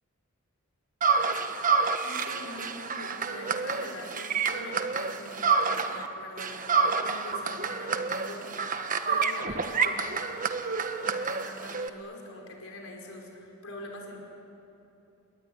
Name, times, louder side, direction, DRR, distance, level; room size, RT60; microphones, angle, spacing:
sound 1, 1.0-6.1 6.4-11.9, right 5 dB, 40° right, 1.3 m, -28 dB
voice 1, 2.0-10.2 11.0-14.2, left 1 dB, 75° left, 1 dB, 5.5 m, -44 dB
29.0 x 21.0 x 9.7 m, 2.9 s
head